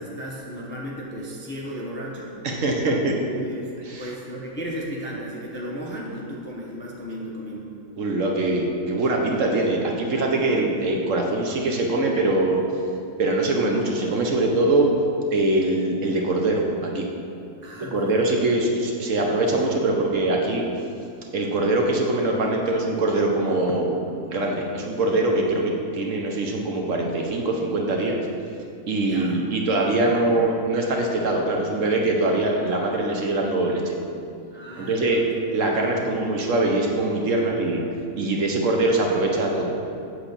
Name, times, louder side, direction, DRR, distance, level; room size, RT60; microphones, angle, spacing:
voice 1, 0.0-2.4 2.7-3.7 4.0-7.7 17.6-18.2 29.0-29.4 30.0-30.5 34.5-35.2 35.7-36.1 37.4-37.7, equal, 10° left, -3 dB, 0.6 m, -35 dB
voice 2, 2.4-3.1 3.9-4.1 8.0-12.6 13.2-14.9 15.3-17.1 17.8-20.6 21.3-24.0 24.3-28.3 28.9-33.9 34.8-35.2 35.5-37.8 38.1-39.7, right 2 dB, 60° right, 1 dB, 1.1 m, -23 dB
8.0 x 3.9 x 6.6 m, 2.6 s
omnidirectional pair, 1.6 m